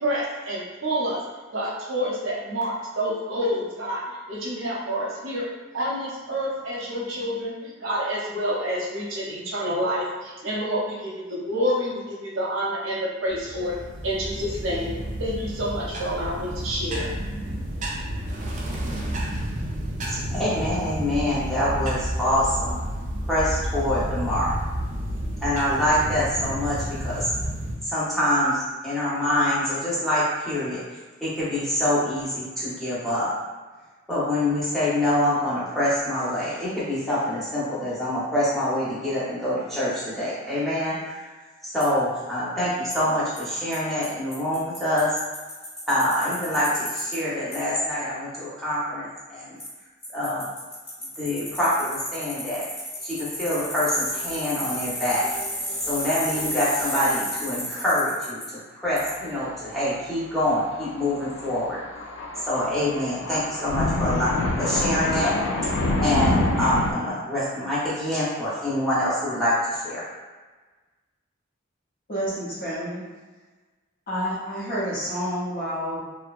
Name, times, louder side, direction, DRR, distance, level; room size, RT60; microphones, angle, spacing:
voice 1, 0.0-1.2 1.5-5.5 5.7-13.8 14.0-17.1, equal, 75° right, -4 dB, 0.6 m, -28 dB
sound 1, 13.3-27.8, equal, 40° right, 0.4 m, -31 dB
voice 2, 20.1-22.8 23.3-24.5 25.4-27.3 27.8-30.8 31.2-33.3 34.1-41.2 41.6-45.1 45.9-49.6 50.1-50.5 51.2-52.6 53.0-55.3 55.8-61.8 62.5-64.3 64.6-65.3 66.0-70.0, left 1 dB, ahead, -10 dB, 0.7 m, -25 dB
Bicycle, 41.8-41.9 42.9-43.0 43.4-43.5 43.7-43.8 44.0-44.1 44.3-47.2 47.5-47.6 49.6-49.7 50.0-58.5 59.0-59.1, left 1 dB, 25° left, 1.1 m, -33 dB
Thunder, 58.9-59.3 59.6-59.7 60.7-66.9, left 2 dB, 75° left, 0.3 m, -26 dB
voice 3, 72.1-73.0 74.1-76.0, equal, 45° left, -7 dB, 0.7 m, -29 dB
2.7 x 2.1 x 2.4 m, 1.3 s
head